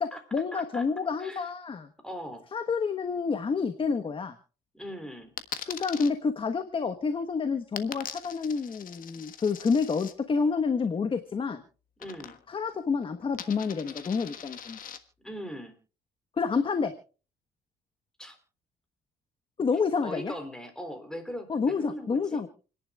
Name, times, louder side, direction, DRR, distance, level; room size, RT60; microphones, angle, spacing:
voice 1, 0.0-1.9 2.5-4.3 5.7-11.6 12.5-14.8 16.4-16.9 19.6-20.3 21.5-22.5, left 5 dB, 30° left, 8 dB, 1.3 m, -28 dB
voice 2, 0.5-0.8 1.2-1.5 2.0-2.5 4.7-5.3 12.0-12.4 15.2-15.8 18.2-18.4 20.0-22.4, equal, 5° left, 7 dB, 3.7 m, -40 dB
Coin (dropping), 5.4-6.1 7.8-10.1 12.0-12.6 12.9-15.0, left 9 dB, 55° left, 1.5 m, -41 dB
29.0 x 11.0 x 2.4 m, 0.36 s
cardioid pair, 110°, 17 cm